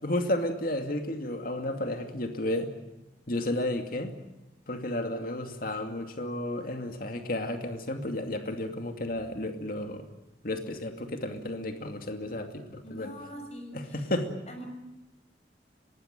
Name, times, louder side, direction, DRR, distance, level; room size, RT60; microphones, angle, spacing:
voice 1, 0.0-2.7 3.3-4.2 4.7-10.1 10.4-13.1 13.7-14.3, left 1 dB, 50° left, 5 dB, 2.4 m, -32 dB
voice 2, 12.8-14.1 14.5-14.7, equal, 35° left, 4 dB, 6.4 m, -43 dB
24.0 x 20.0 x 9.2 m, 1.0 s
head